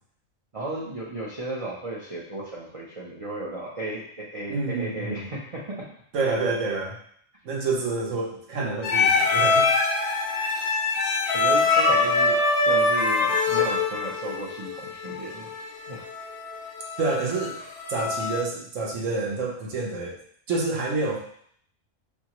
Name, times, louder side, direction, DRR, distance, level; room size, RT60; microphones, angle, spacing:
voice 1, 0.5-5.9 11.3-12.4 12.6-15.5 15.9-16.1, right 2 dB, 40° right, -5 dB, 0.5 m, -34 dB
voice 2, 4.5-5.3 6.1-7.0 7.4-9.7 17.0-17.6 17.9-20.2 20.5-21.2, right 3 dB, 75° right, -1 dB, 1.1 m, -28 dB
sound 1, 8.8-18.4, left 3 dB, 60° left, 0.9 m, -24 dB
4.5 x 2.8 x 2.9 m, 0.63 s
omnidirectional pair, 1.3 m